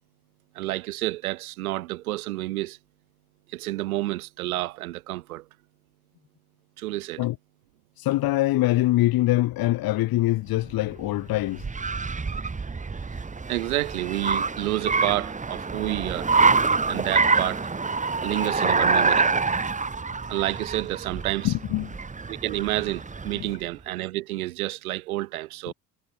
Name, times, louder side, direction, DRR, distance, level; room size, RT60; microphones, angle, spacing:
voice 1, 0.5-2.8 3.5-5.4 6.8-7.3 13.5-16.3 16.9-17.7 18.2-19.3 20.3-21.5 22.3-25.7, right 17 dB, 65° right, 1.1 m, -29 dB
voice 2, 8.0-11.6 21.4-22.0 25.7-25.8, left 17 dB, 50° left, 2.8 m, -23 dB
Car, 10.6-23.5, right 4 dB, 15° right, 2.0 m, -26 dB
figure-of-eight pair, 60°, 46 cm